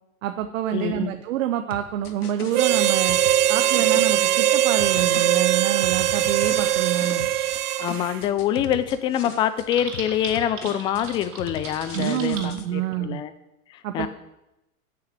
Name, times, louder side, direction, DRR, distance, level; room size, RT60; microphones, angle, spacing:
voice 1, 0.2-3.2 3.5-7.3 11.9-13.2 13.8-14.1, right 12 dB, 60° right, 8 dB, 1.0 m, -27 dB
voice 2, 0.7-1.1 7.8-13.3 13.7-14.1, left 10 dB, 10° left, 13 dB, 0.3 m, -25 dB
sound 1, 1.7-4.2 4.8-7.6 7.9-9.7 9.9-12.7, left 5 dB, 85° left, 1.4 m, -38 dB
Harmonica, 2.5-8.2, right 11 dB, 85° right, 0.6 m, -21 dB
Typing, 9.7-12.5, right 5 dB, 30° right, 3.4 m, -38 dB
12.5 x 6.6 x 8.0 m, 0.94 s
hypercardioid pair, 105°, 44 cm